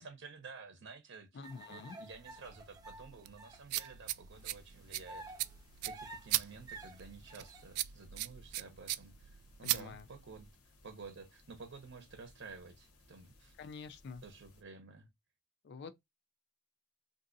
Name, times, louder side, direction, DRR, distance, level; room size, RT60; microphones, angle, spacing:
voice 1, 0.0-5.3 5.8-10.5 10.8-13.5 14.2-15.1, right 4 dB, 60° right, 0.7 m, -52 dB
voice 2, 1.3-2.0 9.6-10.1 13.6-14.2 15.6-15.9, left 4 dB, 50° left, 0.3 m, -47 dB
sound 1, 1.4-4.0 4.4-4.5 5.1-7.7, right 2 dB, 15° right, 0.6 m, -51 dB
sound 2, 2.1-10.5, right 16 dB, 85° right, 0.3 m, -40 dB
sound 3, 4.3-14.6, left 1 dB, 85° left, 0.8 m, -64 dB
3.7 x 2.6 x 2.5 m
head